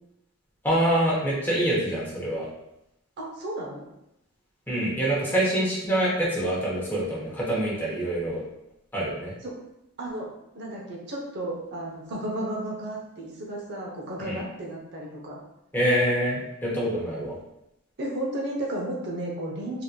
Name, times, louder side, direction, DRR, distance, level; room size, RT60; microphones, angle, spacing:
voice 1, 0.6-2.5 4.7-8.4 8.9-9.3 14.2-14.4 15.7-17.4, right 1 dB, 10° left, -7 dB, 1.0 m, -25 dB
voice 2, 3.2-3.9 9.4-9.6 10.0-10.3 10.5-15.4 18.0-19.8, right 1 dB, 50° right, -2 dB, 0.8 m, -33 dB
3.7 x 2.8 x 2.2 m, 0.84 s
head